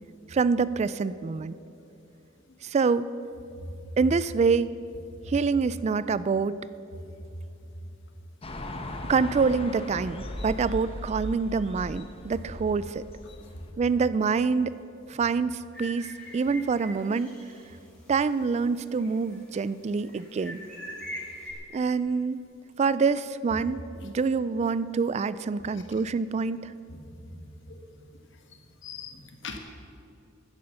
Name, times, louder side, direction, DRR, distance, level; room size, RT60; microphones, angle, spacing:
voice 1, 0.3-1.5 2.6-3.1 4.0-4.7 5.3-6.6 9.1-13.0 13.8-14.8 15.1-17.3 18.1-20.6 21.7-22.4 22.8-26.7, right 5 dB, 35° right, 16 dB, 0.3 m, -26 dB
sound 1, 8.4-13.7, left 1 dB, 30° left, 1.1 m, -38 dB
sound 2, 15.7-17.6 18.0-18.1 18.6-19.4 20.0-21.5, equal, 5° left, 3.3 m, -42 dB
voice 2, 26.9-27.4 27.7-27.9 28.5-29.6, left 3 dB, 65° left, 4 dB, 1.5 m, -42 dB
14.5 x 9.5 x 6.8 m, 2.7 s
head